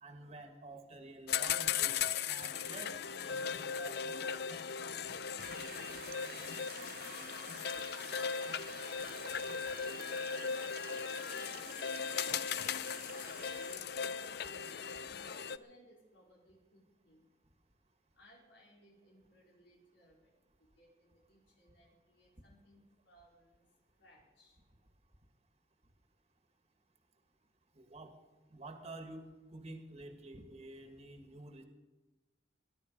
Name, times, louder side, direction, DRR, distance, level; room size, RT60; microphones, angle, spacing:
voice 1, 0.0-2.9 3.2-4.6 27.8-28.1 28.5-29.3 29.5-31.6, right 2 dB, 35° right, 5 dB, 1.7 m, -50 dB
sound 1, 1.3-15.6, left 7 dB, 60° left, 0.5 m, -38 dB
sound 2, 5.4-13.8, right 9 dB, 50° right, 0.5 m, -51 dB
voice 2, 10.8-17.3 18.1-24.8, left 1 dB, 85° left, -3 dB, 4.4 m, -63 dB
21.0 x 11.5 x 5.3 m, 1.1 s
head